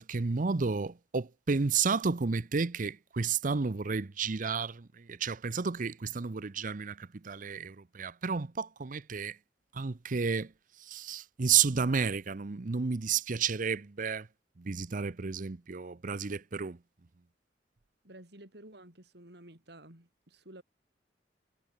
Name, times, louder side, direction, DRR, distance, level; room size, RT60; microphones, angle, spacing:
voice 1, 0.0-9.4 9.7-10.5 10.8-14.3 14.6-16.8, right 5 dB, 45° right, 0.7 m, -31 dB
voice 2, 18.0-20.6, right 1 dB, 65° right, 5.4 m, -52 dB
head